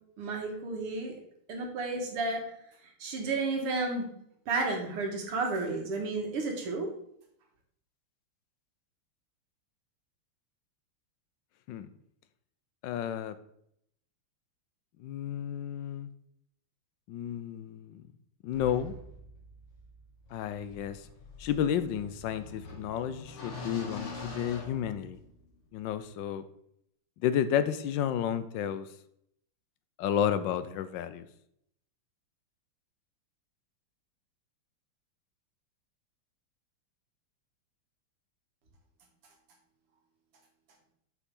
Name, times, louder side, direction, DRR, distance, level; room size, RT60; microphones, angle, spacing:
voice 1, 0.2-1.2 1.5-2.4 2.8-4.1 4.5-6.9, right 3 dB, 85° right, 2 dB, 2.5 m, -32 dB
voice 2, 12.8-13.4 15.0-16.1 17.1-18.0 18.4-18.9 20.3-21.1 21.4-25.2 25.7-26.4 27.2-28.9 30.0-31.3, left 9 dB, 70° left, 12 dB, 1.1 m, -31 dB
sound 1, 18.5-25.5, left 2 dB, 85° left, 2.9 m, -45 dB
7.3 x 6.8 x 3.7 m, 0.71 s
omnidirectional pair, 2.4 m